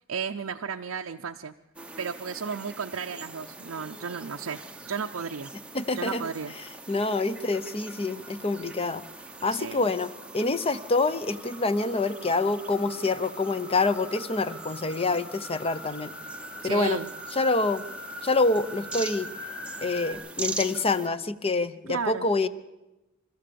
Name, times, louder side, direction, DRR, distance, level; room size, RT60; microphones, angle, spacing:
voice 1, 0.1-1.5 2.0-4.6 4.9-5.5 6.0-6.5 9.5-9.8 16.6-17.1 21.9-22.3, right 6 dB, 85° right, 3 dB, 0.6 m, -33 dB
sound 1, 1.8-21.1, right 3 dB, 5° right, 0.8 m, -42 dB
sound 2, 5.7-20.1, left 1 dB, 70° left, 6.9 m, -45 dB
voice 2, 5.7-6.3 6.9-9.0 9.4-16.1 16.6-17.0 17.3-17.9 18.2-19.3 19.8-22.5, left 3 dB, 30° left, 14 dB, 0.8 m, -26 dB
29.0 x 13.5 x 6.9 m, 1.0 s
head